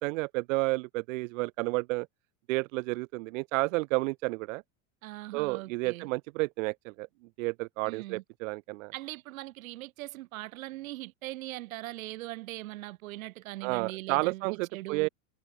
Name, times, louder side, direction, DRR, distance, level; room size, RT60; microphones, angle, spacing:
voice 1, 0.0-2.1 2.5-4.6 5.3-7.1 7.4-8.9 13.6-15.1, right 24 dB, 70° right, 1.0 m, -31 dB
voice 2, 5.0-6.1 7.8-8.2 8.9-15.1, right 18 dB, 85° right, 3.0 m, -41 dB
supercardioid pair, 155°, 40 cm